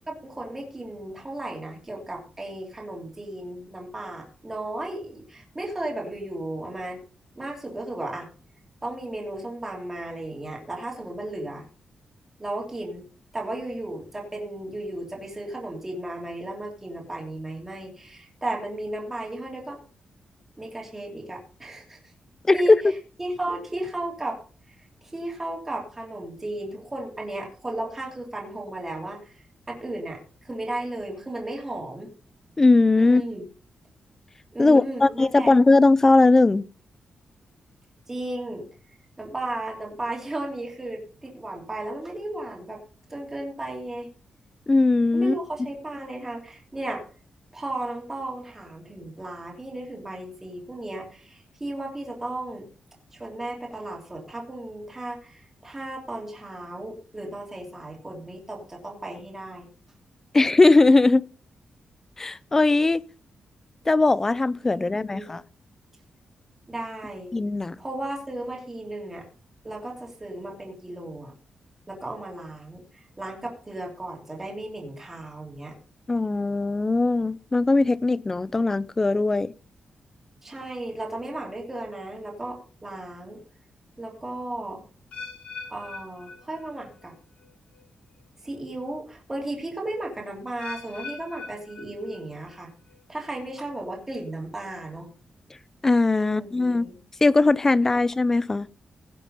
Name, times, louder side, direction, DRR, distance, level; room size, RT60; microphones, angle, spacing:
voice 1, 0.1-7.0 7.4-8.3 8.8-11.6 12.4-13.1 13.3-19.8 20.6-22.0 22.5-22.8 23.2-24.4 24.7-24.8 25.0-32.1 33.0-33.4 34.5-35.5 38.1-38.7 39.2-42.8 43.1-44.1 45.1-47.0 47.5-52.6 53.1-59.7 64.7-65.4 66.7-67.3 67.8-69.3 69.6-71.3 71.9-75.8 80.4-83.4 84.0-84.8 85.7-87.1 88.4-92.7 93.1-95.1 96.2-97.0, right 1 dB, 15° right, 3.0 m, -35 dB
voice 2, 32.6-33.2 34.6-36.7 44.7-45.4 60.3-61.2 62.2-63.0 63.9-65.4 67.3-67.8 76.1-79.5 95.8-96.9 97.2-98.7, left 3 dB, 20° left, 0.5 m, -19 dB
sound 1, 85.1-87.1 87.4-87.8 88.5-88.6 90.6-92.5 92.9-93.3 94.0-94.1, left 4 dB, 75° left, 6.2 m, -42 dB
16.5 x 6.5 x 5.5 m
wide cardioid pair, 170°, 2 cm